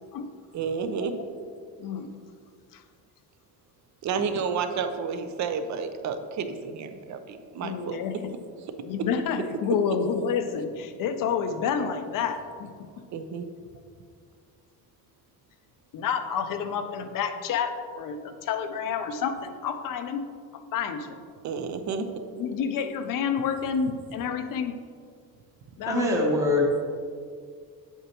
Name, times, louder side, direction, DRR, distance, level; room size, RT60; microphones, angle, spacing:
voice 1, 0.5-1.1 4.0-8.0 13.1-13.5 21.4-22.1, right 6 dB, 45° right, 8 dB, 0.7 m, -31 dB
voice 2, 7.6-8.2 8.8-12.9 15.9-21.2 22.0-22.1 22.4-24.8 25.8-26.1, left 7 dB, 55° left, 8 dB, 0.7 m, -29 dB
voice 3, 25.9-26.8, left 1 dB, 10° right, -2 dB, 0.9 m, -23 dB
8.1 x 8.1 x 3.0 m, 2.1 s
cardioid pair, 155°, 38 cm